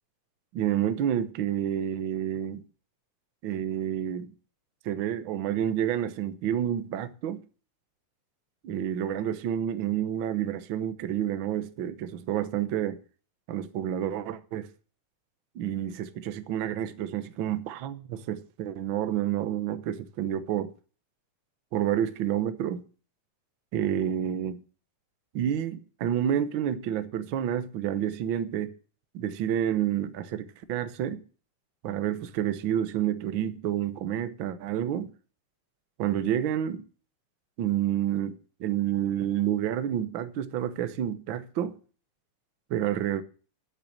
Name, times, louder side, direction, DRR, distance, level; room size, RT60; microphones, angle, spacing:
voice 1, 0.5-2.6 3.4-4.3 4.8-7.4 8.6-13.0 13.5-14.7 15.5-20.7 21.7-22.8 23.7-24.6 25.3-28.7 29.1-31.2 31.8-35.1 36.0-36.8 37.6-41.8 42.7-43.2, right 10 dB, 80° right, 1.1 m, -29 dB
11.0 x 8.1 x 7.5 m
omnidirectional pair, 3.6 m